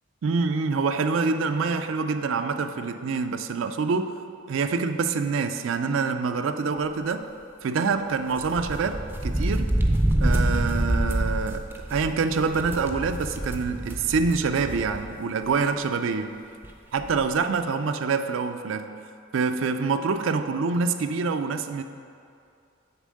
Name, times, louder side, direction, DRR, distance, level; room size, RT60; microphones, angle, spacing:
voice 1, 0.2-4.1 4.5-7.3 7.6-9.7 10.2-16.4 16.9-18.9 19.3-21.8, right 4 dB, 75° right, 9 dB, 0.4 m, -26 dB
sound 1, 8.4-15.1 15.4-15.5 16.6-16.7 17.0-17.3, right 1 dB, 10° right, 0.4 m, -26 dB
6.9 x 4.5 x 6.3 m, 2.4 s
head